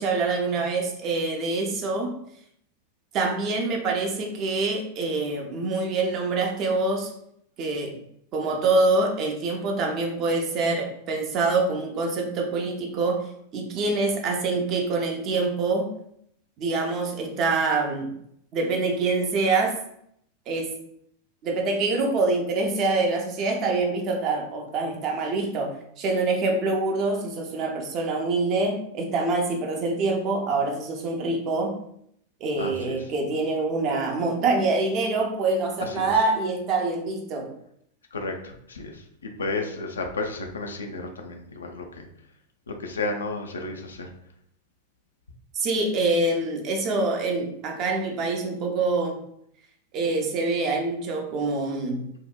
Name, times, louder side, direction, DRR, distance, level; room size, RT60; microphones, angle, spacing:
voice 1, 0.0-2.1 3.1-7.1 7.6-7.9 8.3-13.2 13.5-15.9 16.6-18.1 18.5-19.8 20.5-20.7 21.4-31.8 32.4-37.5 45.5-49.2 49.9-52.1, right 3 dB, 35° right, 2 dB, 0.5 m, -25 dB
voice 2, 35.8-36.1 38.1-42.0 42.7-44.1, left 3 dB, 70° left, 3 dB, 0.4 m, -32 dB
2.7 x 2.1 x 2.3 m, 0.70 s
figure-of-eight pair, 90°, 0 cm